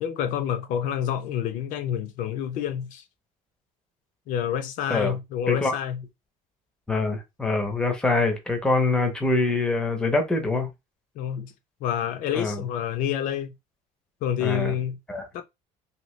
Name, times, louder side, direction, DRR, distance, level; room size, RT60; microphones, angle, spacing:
voice 1, 0.0-3.0 4.3-6.0 11.2-11.5 11.8-13.5 14.2-15.0 15.3-15.4, left 9 dB, 55° left, 0.5 m, -28 dB
voice 2, 6.9-10.7 12.3-12.6 14.4-14.7 15.1-15.3, left 3 dB, 5° left, 0.6 m, -24 dB
2.8 x 2.7 x 3.1 m
cardioid pair, 165°, 16 cm